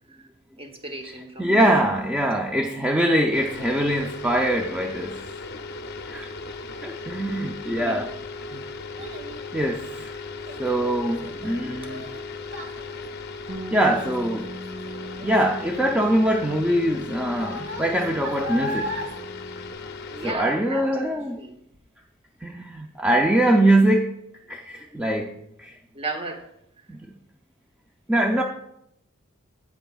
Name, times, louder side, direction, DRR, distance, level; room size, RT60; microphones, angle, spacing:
voice 1, 0.6-1.7 2.3-2.4 7.4-8.0 20.1-21.6 25.9-26.5, right 2 dB, 25° right, 4 dB, 1.0 m, -35 dB
voice 2, 1.4-5.2 6.1-6.3 6.8-8.1 8.5-8.6 9.5-10.1 10.6-12.1 13.7-14.5 15.2-19.1 20.2-21.4 22.4-24.1 24.5-25.3 25.6-25.7 26.9-27.0 28.1-28.4, right 1 dB, 5° right, 1 dB, 0.5 m, -23 dB
sound 1, 3.3-20.3, left 3 dB, 50° left, 0.6 m, -37 dB
Child speech kid speaking, 8.4-20.5 20.8-21.2 21.7-21.8, left 1 dB, 55° right, 1.3 m, -39 dB
Bass guitar, 13.5-19.7, equal, 85° right, 2.1 m, -41 dB
17.0 x 5.8 x 2.3 m, 0.79 s
head